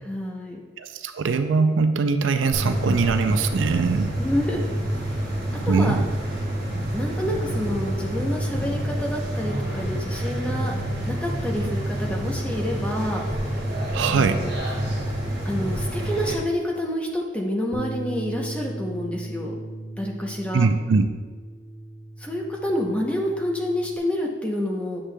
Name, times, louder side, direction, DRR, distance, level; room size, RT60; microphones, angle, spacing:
voice 1, 0.0-0.6 4.2-4.7 5.0-5.2 5.7-6.0 6.9-10.8 11.1-13.2 14.1-14.5 15.4-19.5 20.0-20.7 22.2-25.0, left 1 dB, 5° left, -1 dB, 0.7 m, -28 dB
voice 2, 0.8-4.1 5.7-6.0 13.9-14.4 20.5-21.1, right 4 dB, 80° right, 8 dB, 0.4 m, -22 dB
sound 1, 2.5-16.3, right 1 dB, 55° right, 1.9 m, -27 dB
Bass guitar, 17.7-24.0, right 1 dB, 45° left, 0.6 m, -37 dB
8.7 x 6.5 x 2.2 m, 1.4 s
head